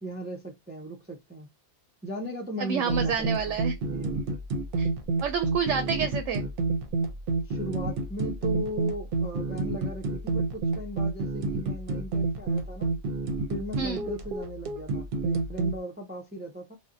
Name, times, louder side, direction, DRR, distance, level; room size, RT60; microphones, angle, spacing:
voice 1, 0.0-1.5 2.0-3.6 3.9-4.3 7.4-12.9 13.5-16.8, right 1 dB, 15° right, 0.3 m, -37 dB
voice 2, 2.6-3.7 4.8-4.9 5.2-6.5 13.8-14.0, right 6 dB, 90° right, 0.9 m, -28 dB
sound 1, 2.9-15.8, right 3 dB, 60° right, 0.7 m, -29 dB
2.6 x 2.0 x 3.7 m
omnidirectional pair, 1.2 m